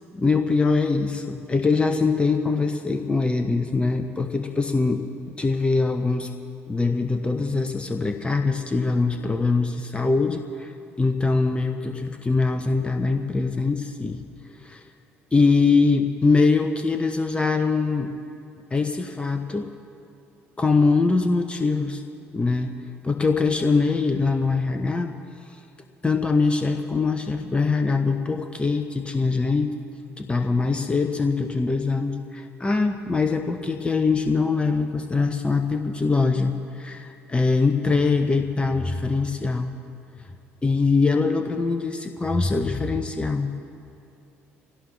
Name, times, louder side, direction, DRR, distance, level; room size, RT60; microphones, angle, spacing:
voice 1, 0.1-5.0 5.4-6.3 6.7-10.7 11.0-14.2 14.6-14.9 15.3-18.1 18.7-19.7 20.6-22.0 22.3-22.7 23.0-25.1 26.0-29.7 30.2-39.7 40.6-43.5, left 4 dB, 15° left, 6 dB, 0.9 m, -23 dB
25.0 x 17.0 x 3.2 m, 2.6 s
figure-of-eight pair, 55°, 7 cm